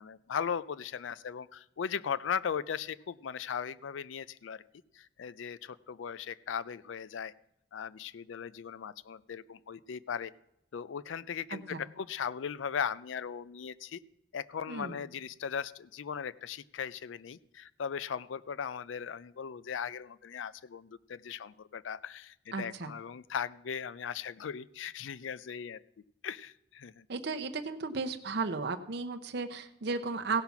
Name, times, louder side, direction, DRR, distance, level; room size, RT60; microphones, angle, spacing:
voice 1, 0.0-4.6 4.9-7.3 7.7-10.3 10.7-14.0 14.3-25.8 26.2-27.1, left 7 dB, 85° left, 18 dB, 0.4 m, -38 dB
voice 2, 11.5-11.8 14.7-15.0 22.5-22.9 27.1-30.4, right 4 dB, 60° right, 5 dB, 0.7 m, -35 dB
16.5 x 5.7 x 5.9 m, 0.81 s
head